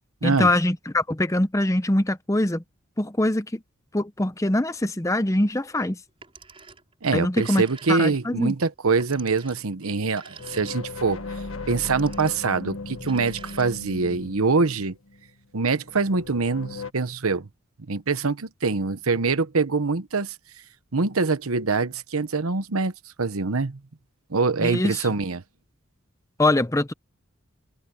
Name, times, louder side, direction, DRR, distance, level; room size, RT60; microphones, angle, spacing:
voice 1, 0.2-2.6 3.0-3.6 3.9-6.0 7.1-7.6 7.9-8.5 24.6-25.1 26.4-26.9, left 1 dB, 15° left, 0.7 m, -23 dB
Telephone, 6.1-6.9 7.2-8.3 9.0-11.1 11.7-12.5 13.0-14.0, right 5 dB, 25° right, 6.4 m, -47 dB
voice 2, 7.0-11.2 11.7-15.0 15.5-17.5 17.9-20.3 20.9-22.9 23.2-23.8 24.3-25.4, right 4 dB, 90° right, 1.1 m, -24 dB
sound 1, 10.4-15.3 15.8-16.9, left 3 dB, 75° left, 1.6 m, -37 dB
head